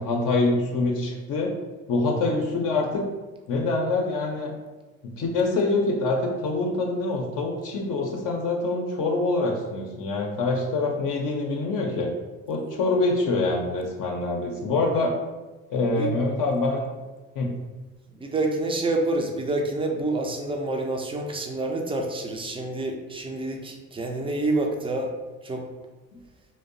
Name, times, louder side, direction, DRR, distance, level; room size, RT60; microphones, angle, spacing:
voice 1, 0.0-1.5 1.9-3.0 3.5-4.5 5.2-12.1 12.5-15.1 15.7-16.9 17.3-17.5 26.1-26.2, left 3 dB, 50° left, 0 dB, 0.5 m, -25 dB
voice 2, 18.2-25.1 25.4-25.6, right 2 dB, 15° right, 2 dB, 0.3 m, -27 dB
2.6 x 2.0 x 2.5 m, 1.2 s
hypercardioid pair, 60°, 41 cm